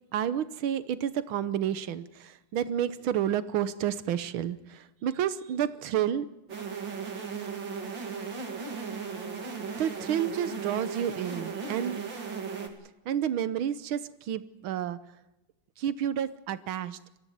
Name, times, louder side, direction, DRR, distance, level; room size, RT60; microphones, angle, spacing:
voice 1, 0.1-6.3 9.7-12.0 13.1-15.0 15.8-17.0, right 10 dB, 85° right, 14 dB, 1.8 m, -30 dB
sound 1, 6.5-12.7, right 5 dB, 65° right, 3.2 m, -36 dB
23.5 x 15.5 x 9.3 m, 0.97 s
omnidirectional pair, 2.2 m